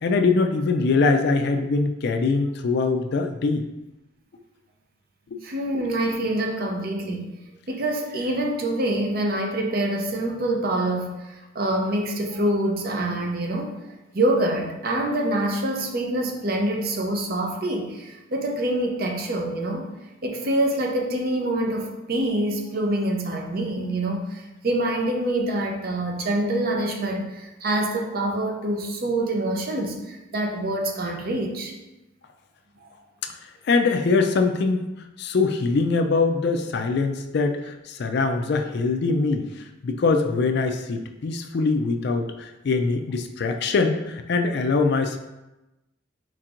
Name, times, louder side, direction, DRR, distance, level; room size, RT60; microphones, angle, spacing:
voice 1, 0.0-3.6 5.3-5.4 33.6-34.9 35.2-45.2, left 4 dB, 55° left, 6 dB, 0.4 m, -23 dB
voice 2, 5.4-7.3 7.7-13.8 14.1-19.9 20.2-31.7, right 1 dB, 50° right, 2 dB, 0.6 m, -26 dB
4.5 x 4.3 x 2.5 m, 1.0 s
head